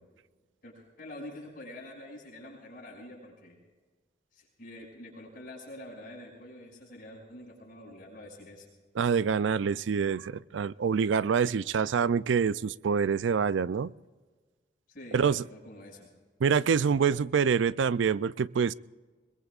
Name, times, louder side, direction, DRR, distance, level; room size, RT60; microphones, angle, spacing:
voice 1, 0.6-3.6 4.3-8.7 14.9-16.1, left 1 dB, 50° left, -1 dB, 6.3 m, -46 dB
voice 2, 9.0-13.9 15.1-15.4 16.4-18.7, right 6 dB, 80° right, 18 dB, 0.4 m, -26 dB
24.5 x 22.0 x 2.4 m, 1.4 s
head